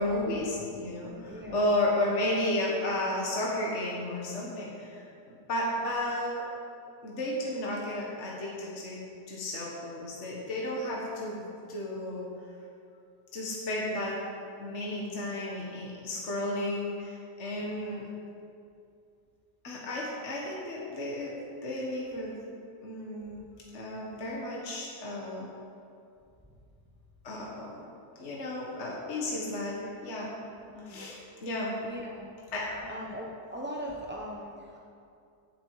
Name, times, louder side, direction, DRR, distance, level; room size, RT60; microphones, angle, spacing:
voice 1, 0.0-6.5 7.0-9.0 9.3-12.3 13.3-14.2 14.6-18.1 19.6-22.5 22.8-23.4 23.7-25.5 27.2-27.8 28.2-30.3 30.8-31.8 32.5-32.8, left 1 dB, 45° left, -3 dB, 1.9 m, -33 dB
voice 2, 1.3-1.8 17.6-18.0 30.7-31.1 31.8-32.3 32.9-34.8, equal, 10° right, -3 dB, 0.6 m, -40 dB
17.5 x 8.0 x 4.9 m, 2.5 s
omnidirectional pair, 1.8 m